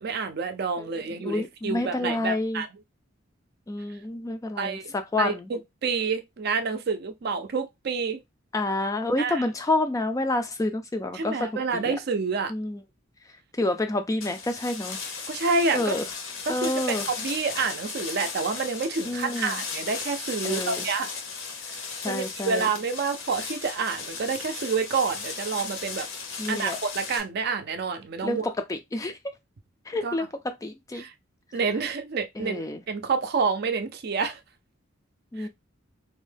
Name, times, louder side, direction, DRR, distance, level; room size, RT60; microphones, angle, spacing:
voice 1, 0.0-2.7 4.6-4.9 5.2-8.2 9.2-9.4 11.1-12.5 15.3-15.9 16.4-21.1 22.0-26.1 26.5-28.5 30.0-30.2 31.0-31.1 31.5-34.4 35.4-35.5, right 4 dB, 50° right, 0.4 m, -28 dB
voice 2, 1.2-2.6 3.7-5.5 8.5-12.0 12.5-12.8 13.6-15.0 15.7-16.0 16.5-17.1 19.1-19.6 20.4-20.9 22.0-22.7 26.4-26.8 28.2-28.4 28.7-29.1 29.9-30.3 30.6-31.0 32.4-32.8 35.3-35.5, left 2 dB, 15° left, 0.3 m, -28 dB
sound 1, 14.2-27.2, left 5 dB, 80° left, 0.9 m, -36 dB
2.6 x 2.2 x 3.3 m
head